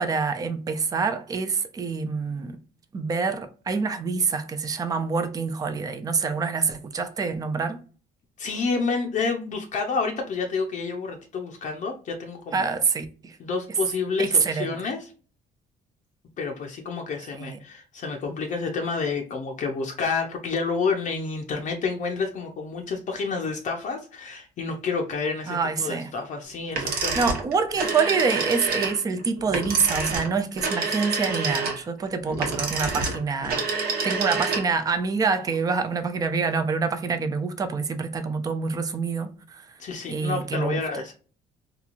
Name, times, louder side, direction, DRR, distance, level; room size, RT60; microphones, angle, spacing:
voice 1, 0.0-2.6 2.9-7.8 12.5-13.4 14.2-14.8 17.3-17.6 25.5-26.1 26.8-33.6 34.0-39.6 40.1-40.8, right 5 dB, 20° right, 0.4 m, -26 dB
voice 2, 8.4-12.7 13.4-15.1 16.4-27.3 39.8-41.1, left 4 dB, 50° left, 0.6 m, -29 dB
sound 1, 26.7-34.9, right 4 dB, 65° right, 0.9 m, -28 dB
3.0 x 2.3 x 2.4 m
cardioid pair, 110°, 17 cm